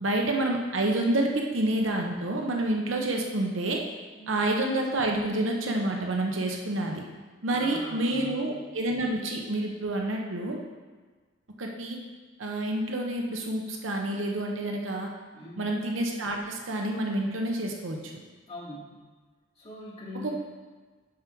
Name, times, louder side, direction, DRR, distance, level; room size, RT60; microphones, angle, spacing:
voice 1, 0.0-3.8 4.3-7.0 7.4-10.6 11.6-12.0 12.4-15.1 15.6-18.0 20.2-20.4, right 1 dB, 80° right, 1 dB, 0.8 m, -28 dB
voice 2, 7.5-8.5 15.3-15.7 18.5-19.0 19.6-20.4, left 1 dB, 30° left, -8 dB, 2.2 m, -41 dB
7.4 x 6.0 x 4.5 m, 1.4 s
head